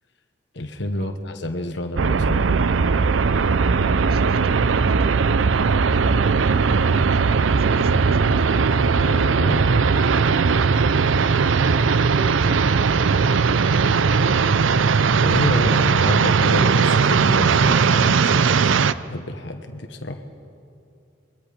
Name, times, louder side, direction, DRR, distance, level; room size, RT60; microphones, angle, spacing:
voice 1, 0.5-2.8 8.7-9.9 15.2-18.5 19.1-20.2, left 1 dB, 65° left, 5 dB, 1.3 m, -29 dB
sound 1, 2.0-18.9, right 5 dB, 90° right, 0.5 m, -18 dB
voice 2, 3.9-8.9 11.6-14.9, right 3 dB, 55° right, 12 dB, 0.8 m, -38 dB
24.5 x 21.5 x 5.2 m, 2.6 s
head